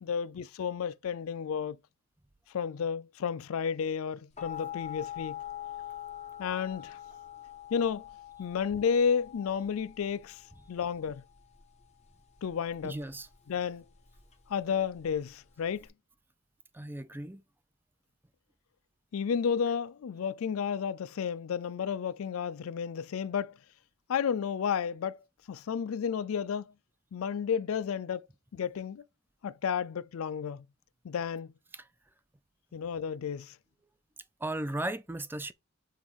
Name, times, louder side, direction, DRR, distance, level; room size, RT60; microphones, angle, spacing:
voice 1, 0.0-1.8 2.5-5.4 6.4-7.0 7.7-8.0 8.4-10.4 10.7-11.2 12.4-12.9 13.5-13.8 14.5-15.9 19.1-23.5 24.1-25.2 25.5-26.6 27.1-28.3 28.5-29.0 29.4-30.6 31.0-31.5 32.7-33.5, left 7 dB, 80° left, 0.4 m, -32 dB
sound 1, 4.4-15.9, left 12 dB, 35° left, 1.6 m, -45 dB
voice 2, 12.8-13.3 16.7-17.4 31.7-31.8 34.4-35.5, right 1 dB, 10° right, 0.5 m, -36 dB
7.3 x 3.5 x 4.7 m
head